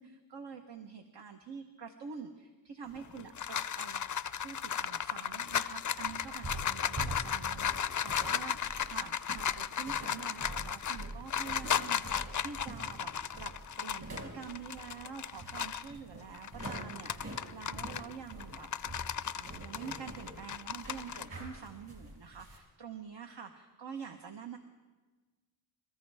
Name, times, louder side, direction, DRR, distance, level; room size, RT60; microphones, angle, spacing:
voice 1, 0.0-4.0 4.4-13.5 13.8-18.7 19.3-24.6, right 6 dB, 60° right, 5 dB, 1.1 m, -46 dB
sound 1, 3.0-15.9 16.3-21.2, left 8 dB, 40° left, 0.5 m, -35 dB
sound 2, 6.1-22.6, right 2 dB, 40° right, 6.0 m, -46 dB
27.0 x 13.5 x 3.4 m, 1.3 s
cardioid pair, 75°, 47 cm